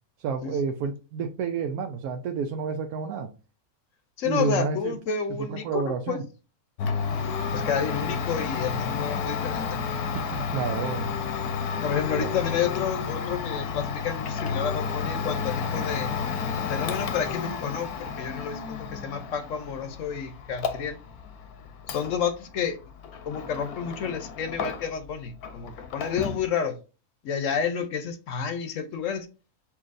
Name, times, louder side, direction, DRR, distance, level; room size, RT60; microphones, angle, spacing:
voice 1, 0.2-3.3 4.2-5.0 5.4-6.2 10.1-11.1 12.2-12.3, right 5 dB, 85° right, 1.1 m, -30 dB
voice 2, 4.2-6.2 7.5-9.7 11.8-16.2 16.7-21.0 21.9-22.8 23.3-26.8 27.2-29.3, left 7 dB, 65° left, 1.0 m, -30 dB
Domestic sounds home sounds, 6.8-25.1 25.4-26.5, left 6 dB, 85° left, 1.2 m, -31 dB
7.0 x 2.6 x 2.5 m
omnidirectional pair, 1.5 m